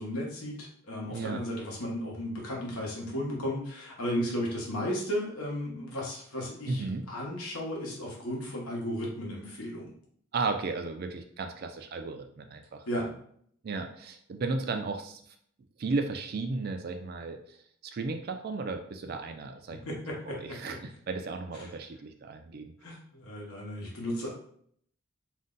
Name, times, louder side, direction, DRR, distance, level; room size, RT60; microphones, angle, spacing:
voice 1, 0.0-9.9 12.9-13.1 19.7-20.6 21.6-21.7 22.8-24.3, equal, 90° left, -2 dB, 1.0 m, -35 dB
voice 2, 1.1-1.4 6.7-7.1 10.3-12.8 13.6-15.2 15.8-17.6 17.8-19.8 20.3-22.7, right 3 dB, 45° right, 6 dB, 0.3 m, -34 dB
2.6 x 2.1 x 3.7 m, 0.63 s
head